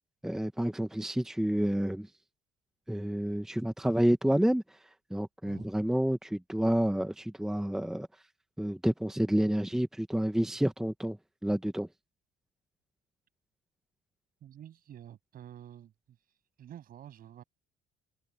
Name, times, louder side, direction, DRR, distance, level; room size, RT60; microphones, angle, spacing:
voice 1, 0.2-2.1 2.9-4.8 5.1-8.1 8.6-11.2 11.4-11.9, equal, 5° right, 1.0 m, -29 dB
voice 2, 14.4-16.2 16.6-17.4, right 10 dB, 60° right, 7.4 m, -49 dB
cardioid pair, 110°, 17 cm